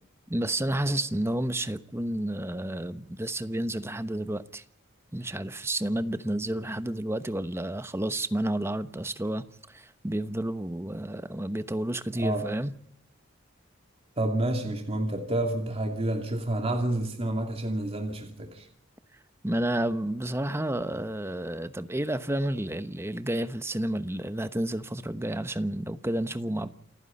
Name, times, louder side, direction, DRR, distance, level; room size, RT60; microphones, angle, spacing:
voice 1, 0.3-4.6 5.1-12.7 19.4-26.7, right 1 dB, 15° right, 1.0 m, -30 dB
voice 2, 12.2-12.5 14.2-18.7, right 1 dB, 30° right, 2.7 m, -29 dB
28.5 x 9.7 x 9.8 m
head